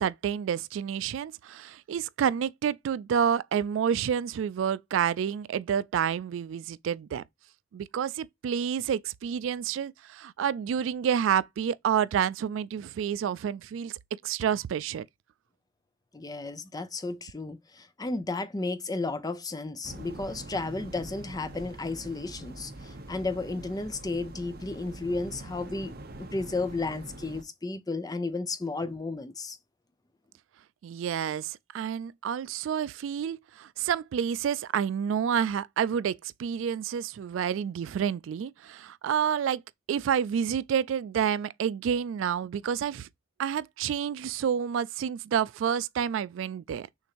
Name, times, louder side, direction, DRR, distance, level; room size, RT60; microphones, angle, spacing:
voice 1, 0.0-7.2 7.7-13.9 14.2-15.1 30.8-39.6 39.9-43.1 43.4-46.9, right 8 dB, 75° right, 0.3 m, -29 dB
voice 2, 16.1-25.9 26.2-29.6, left 3 dB, 20° left, 0.5 m, -33 dB
sound 1, 19.8-27.4, right 1 dB, 55° right, 0.9 m, -44 dB
6.4 x 2.6 x 2.8 m
head